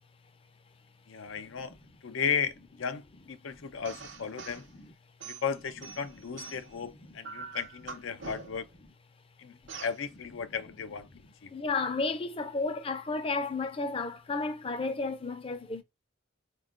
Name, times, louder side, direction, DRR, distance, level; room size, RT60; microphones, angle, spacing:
voice 1, 1.1-1.8 2.0-4.7 5.2-8.7 9.4-11.1 11.4-11.5, left 6 dB, 85° left, 0.5 m, -35 dB
sound 1, 3.8-4.6 5.2-6.8 7.2-8.7 9.7-10.0, right 4 dB, 70° right, 0.9 m, -44 dB
voice 2, 11.5-15.8, left 3 dB, 30° left, 0.5 m, -32 dB
4.2 x 2.3 x 3.6 m
head